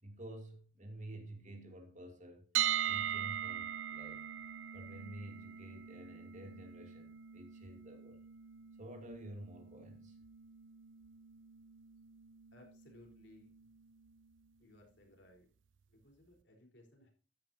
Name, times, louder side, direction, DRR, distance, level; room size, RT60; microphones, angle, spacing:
voice 1, 0.0-2.5 2.9-4.2 4.7-8.2 8.7-10.2, right 1 dB, 40° right, 2.7 m, -50 dB
sound 1, 2.5-14.5, right 10 dB, 80° right, 0.5 m, -42 dB
voice 2, 12.5-13.5 14.6-15.5 15.9-17.1, left 1 dB, 65° left, 4.2 m, -61 dB
13.5 x 10.5 x 2.8 m
head